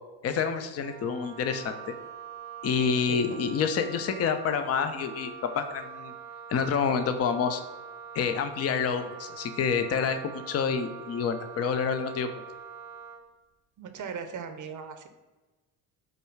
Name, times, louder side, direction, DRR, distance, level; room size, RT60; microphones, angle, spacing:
voice 1, 0.2-1.8 2.6-6.1 6.5-7.6 8.1-12.4, left 6 dB, 30° left, 8 dB, 0.5 m, -28 dB
Wind instrument woodwind instrument, 0.8-13.3, right 6 dB, 85° right, 0.8 m, -44 dB
voice 2, 3.1-3.4 13.8-15.1, right 6 dB, 40° right, 7 dB, 0.7 m, -38 dB
5.0 x 2.3 x 4.7 m, 1.2 s
hypercardioid pair, 60°, 47 cm